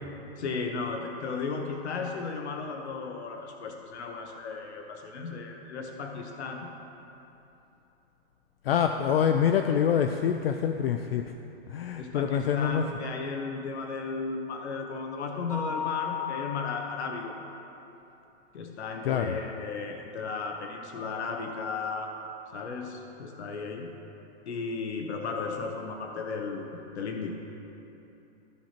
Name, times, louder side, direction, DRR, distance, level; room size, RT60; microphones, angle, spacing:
voice 1, 0.4-6.7 12.0-17.4 18.5-22.1 22.5-23.9 24.5-27.3, left 4 dB, 90° left, 3 dB, 1.0 m, -35 dB
voice 2, 8.6-11.3 11.7-12.9 19.0-19.4, left 8 dB, 65° left, 6 dB, 0.5 m, -26 dB
Mallet percussion, 15.5-17.3, left 9 dB, 10° left, 0.8 m, -35 dB
14.0 x 5.9 x 2.9 m, 2.9 s
hypercardioid pair, 175°, 33 cm